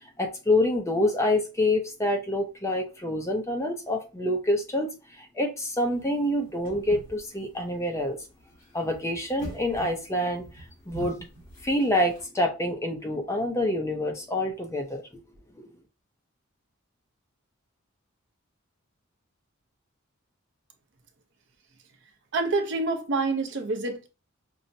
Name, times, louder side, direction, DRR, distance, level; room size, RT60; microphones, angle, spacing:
voice 1, 0.2-4.9 5.2-8.2 8.7-10.4 10.9-11.2 11.6-15.0 15.6-15.7, left 1 dB, 15° left, 0.5 m, -26 dB
sound 1, 5.9-12.2, right 1 dB, 40° left, 1.7 m, -43 dB
voice 2, 22.3-24.1, right 3 dB, 60° right, 0.5 m, -27 dB
5.4 x 2.0 x 2.6 m
head